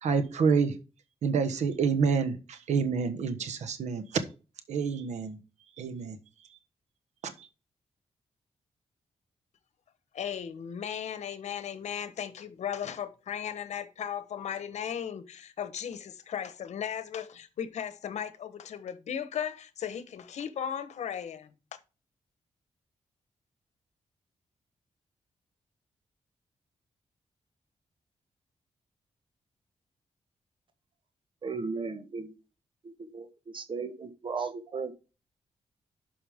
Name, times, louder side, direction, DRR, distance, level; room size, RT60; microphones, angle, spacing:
voice 1, 0.0-0.7 1.2-4.0 4.7-5.4 5.8-6.2 7.4-7.5, right 5 dB, 90° right, 1.3 m, -28 dB
voice 2, 10.1-21.5, left 8 dB, 80° left, 1.1 m, -36 dB
voice 3, 31.4-32.3 32.8-34.9, right 4 dB, 45° right, 1.3 m, -36 dB
11.5 x 5.5 x 3.6 m
wide cardioid pair, 120°, 12 cm